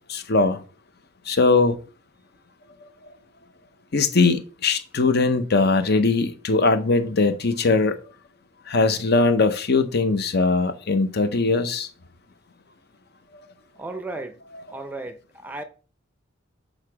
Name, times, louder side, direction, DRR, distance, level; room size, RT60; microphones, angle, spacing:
voice 1, 0.1-0.6 1.3-1.8 3.9-8.0 8.7-11.9, left 3 dB, 55° left, 0.8 m, -20 dB
voice 2, 13.8-14.4 14.7-15.6, right 2 dB, 10° right, 0.5 m, -34 dB
6.5 x 3.8 x 4.8 m
head